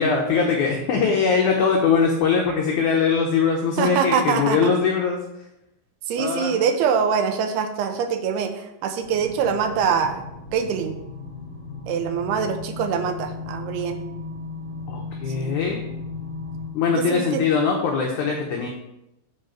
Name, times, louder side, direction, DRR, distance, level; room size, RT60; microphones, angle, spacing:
voice 1, 0.0-5.2 6.2-6.5 14.9-15.8 16.7-18.7, left 5 dB, 80° left, 0 dB, 1.7 m, -21 dB
voice 2, 3.8-4.7 6.1-10.2 10.5-11.0 11.9-14.0 15.4-15.6 16.9-17.4, right 6 dB, 80° right, 6 dB, 2.6 m, -24 dB
sound 1, 9.0-16.7, left 3 dB, 50° left, 1.1 m, -35 dB
9.1 x 4.8 x 4.5 m, 0.87 s
omnidirectional pair, 4.7 m